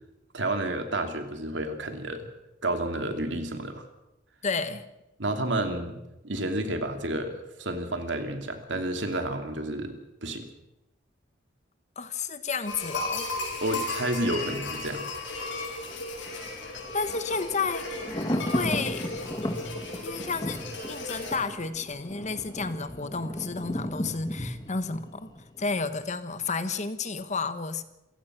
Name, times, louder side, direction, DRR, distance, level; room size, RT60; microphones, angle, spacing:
voice 1, 0.3-2.3 2.6-3.8 5.2-10.0 10.2-10.5 13.6-15.1, right 1 dB, 70° right, 6 dB, 2.7 m, -30 dB
voice 2, 4.4-4.8 12.0-13.3 16.9-17.9 18.3-19.1 20.0-25.3 25.6-27.8, left 4 dB, 40° left, 11 dB, 1.2 m, -31 dB
sound 1, 12.7-21.3, left 2 dB, 85° left, 6.4 m, -35 dB
Thunder, 15.2-26.1 26.4-26.5, equal, 20° left, 1.5 m, -36 dB
27.5 x 16.0 x 6.1 m, 0.94 s
head